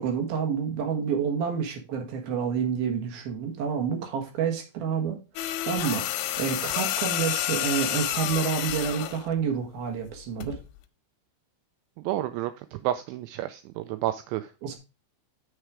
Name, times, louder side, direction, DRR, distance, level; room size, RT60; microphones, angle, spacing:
voice 1, 0.0-10.6 14.6-14.8, right 7 dB, 60° right, 3 dB, 2.7 m, -29 dB
sound 1, 5.4-9.2 10.4-10.6, left 13 dB, 90° left, 3.3 m, -29 dB
voice 2, 12.0-14.5, right 13 dB, 85° right, 11 dB, 2.7 m, -30 dB
6.9 x 6.4 x 4.8 m, 0.30 s
omnidirectional pair, 5.8 m